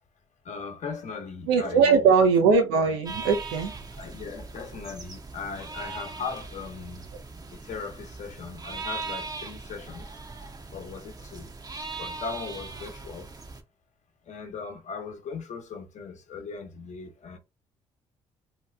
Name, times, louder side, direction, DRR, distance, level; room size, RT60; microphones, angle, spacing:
voice 1, 0.4-2.1 3.9-7.1 7.5-10.2 10.7-11.5 12.0-13.3 14.2-17.4, left 5 dB, 50° left, 1.0 m, -38 dB
voice 2, 1.5-3.7, right 5 dB, 80° right, 0.6 m, -20 dB
sound 1, 3.1-13.6, right 3 dB, 25° right, 0.7 m, -40 dB
2.8 x 2.2 x 3.4 m
hypercardioid pair, 55°, 15 cm